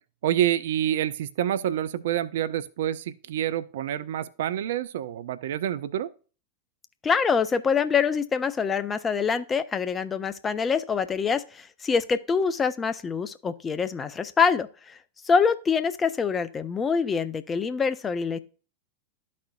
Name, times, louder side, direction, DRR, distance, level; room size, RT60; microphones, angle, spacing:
voice 1, 0.2-6.1, right 11 dB, 55° right, 0.3 m, -27 dB
voice 2, 7.0-15.0 15.2-18.4, left 6 dB, 20° left, 0.4 m, -25 dB
12.5 x 4.2 x 2.3 m
figure-of-eight pair, 90°, 0 cm